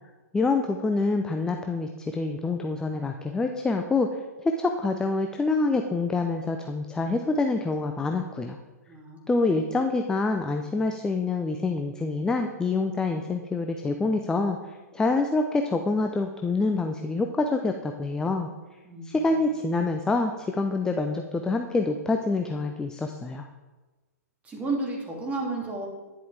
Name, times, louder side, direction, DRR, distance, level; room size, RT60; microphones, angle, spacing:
voice 1, 0.3-8.6 9.3-14.6 14.9-18.5 19.0-23.4, left 3 dB, 5° left, 5 dB, 0.5 m, -26 dB
voice 2, 8.9-9.7 18.8-19.3 24.4-25.9, right 3 dB, 15° right, -2 dB, 2.6 m, -33 dB
11.0 x 10.0 x 3.4 m, 1.2 s
figure-of-eight pair, 110°, 9 cm